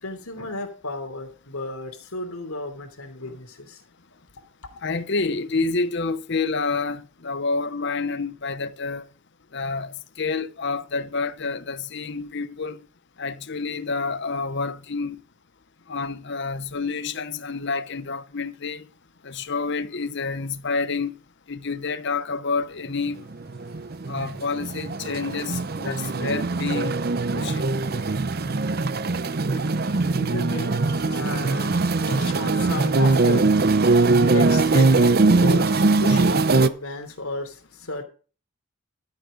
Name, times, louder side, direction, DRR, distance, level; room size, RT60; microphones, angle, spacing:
voice 1, 0.0-3.8 29.5-38.0, left 2 dB, 80° left, 3.2 m, -34 dB
voice 2, 4.8-9.0 9.5-12.8 13.2-15.2 15.9-18.8 19.2-21.1 21.5-23.2 24.1-26.9 27.3-27.6, left 4 dB, 55° left, 0.9 m, -28 dB
sound 1, 23.3-36.7, right 3 dB, 45° right, 0.6 m, -21 dB
12.5 x 9.3 x 3.9 m
head